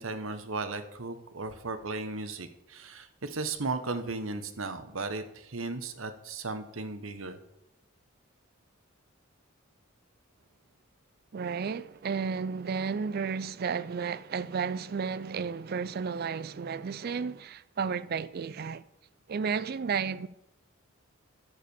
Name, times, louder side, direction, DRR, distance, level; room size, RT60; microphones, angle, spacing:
voice 1, 0.0-7.4, right 3 dB, 80° right, 1.1 m, -36 dB
voice 2, 11.3-18.8 19.3-20.3, right 6 dB, 50° right, 0.4 m, -32 dB
14.0 x 5.0 x 7.0 m
head